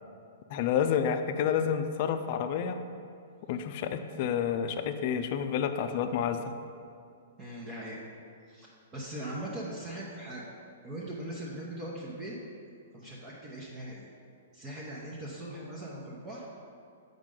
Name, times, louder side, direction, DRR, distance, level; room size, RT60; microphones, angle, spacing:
voice 1, 0.5-2.8 3.5-6.4, left 8 dB, 50° left, 9 dB, 0.4 m, -29 dB
voice 2, 7.4-8.0 8.5-10.5 10.8-12.4 12.9-14.1 14.5-16.5, right 1 dB, 25° right, -6 dB, 1.0 m, -40 dB
7.2 x 5.2 x 3.8 m, 2.4 s
hypercardioid pair, 115°, 0 cm